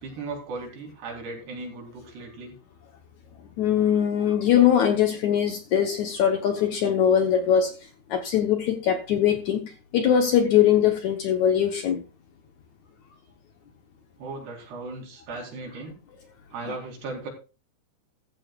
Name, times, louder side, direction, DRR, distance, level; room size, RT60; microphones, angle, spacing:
voice 1, 0.0-2.6 14.2-16.0 16.5-17.3, right 3 dB, 85° right, 6.1 m, -37 dB
voice 2, 3.6-7.8 8.1-12.0, left 9 dB, 70° left, 1.9 m, -21 dB
14.5 x 13.5 x 2.4 m
omnidirectional pair, 4.6 m